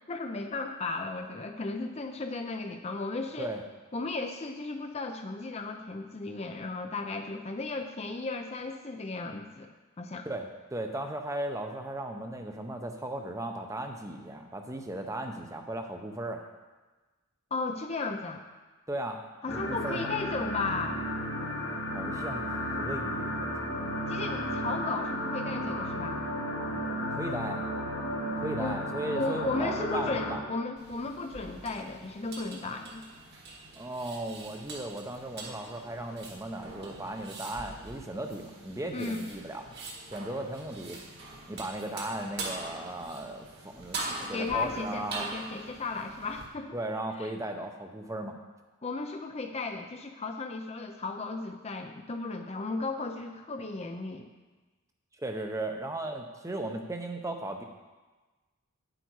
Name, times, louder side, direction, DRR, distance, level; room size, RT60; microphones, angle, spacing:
voice 1, 0.1-3.5 3.9-9.7 10.0-10.3 17.5-18.4 19.4-21.0 24.1-26.2 28.6-28.9 29.1-33.0 38.9-39.2 44.1-46.8 47.2-47.3 48.8-54.3, left 3 dB, 30° left, 5 dB, 0.5 m, -35 dB
voice 2, 10.2-16.4 18.9-20.1 21.9-23.9 27.1-27.7 28.4-30.4 33.8-39.7 40.1-41.0 41.5-45.3 46.7-48.4 55.2-57.6, right 1 dB, 15° right, 4 dB, 0.7 m, -36 dB
sound 1, 19.5-30.4, equal, 70° left, 1.5 m, -33 dB
sound 2, 30.8-46.5, right 3 dB, 50° right, 1.6 m, -43 dB
9.5 x 7.9 x 4.7 m, 1.2 s
head